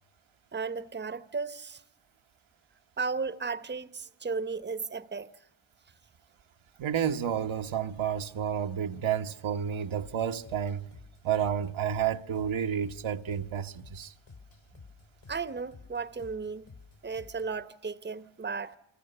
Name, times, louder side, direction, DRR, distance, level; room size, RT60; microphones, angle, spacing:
voice 1, 0.5-1.8 3.0-5.3 15.3-16.6 17.0-18.8, right 4 dB, 20° right, 0.9 m, -35 dB
voice 2, 6.8-10.8 11.2-14.1, right 8 dB, 70° right, 1.1 m, -30 dB
sound 1, 10.0-17.6, left 4 dB, 70° left, 3.9 m, -53 dB
29.0 x 24.0 x 6.7 m
cardioid pair, 55°, 49 cm